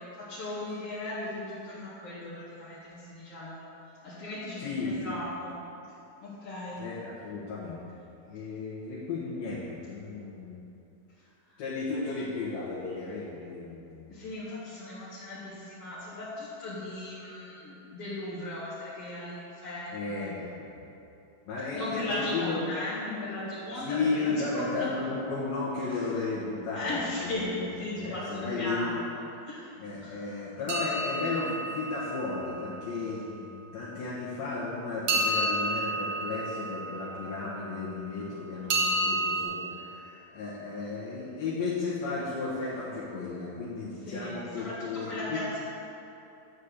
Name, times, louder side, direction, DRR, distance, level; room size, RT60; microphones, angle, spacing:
voice 1, 0.0-3.7 4.0-5.5 6.2-6.8 11.5-11.6 14.1-20.3 21.7-25.1 25.8-25.9 26.7-29.2 29.5-29.7 30.0-30.2 44.1-45.6, left 1 dB, 45° left, -12 dB, 2.7 m, -37 dB
voice 2, 4.6-5.2 6.8-7.8 8.3-10.6 11.6-14.1 19.9-20.9 21.5-22.6 23.9-27.8 28.0-28.9 29.8-45.4, left 3 dB, 75° left, -9 dB, 3.1 m, -34 dB
sound 1, 30.7-32.7 35.1-37.5 38.7-39.4, right 1 dB, 65° right, 1.5 m, -30 dB
11.5 x 4.2 x 8.1 m, 2.9 s
omnidirectional pair, 4.3 m